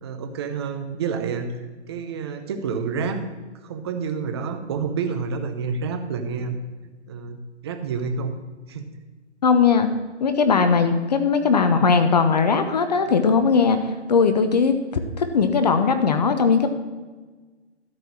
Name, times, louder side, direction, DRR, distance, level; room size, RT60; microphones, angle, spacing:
voice 1, 0.0-1.5 1.9-3.2 3.6-6.6 7.1-8.3 8.7-8.9, right 5 dB, 20° right, 6 dB, 0.7 m, -28 dB
voice 2, 9.4-9.9 10.2-14.8 15.2-16.7, left 5 dB, 35° left, 8 dB, 0.7 m, -19 dB
13.0 x 4.7 x 7.2 m, 1.3 s
hypercardioid pair, 150°, 35 cm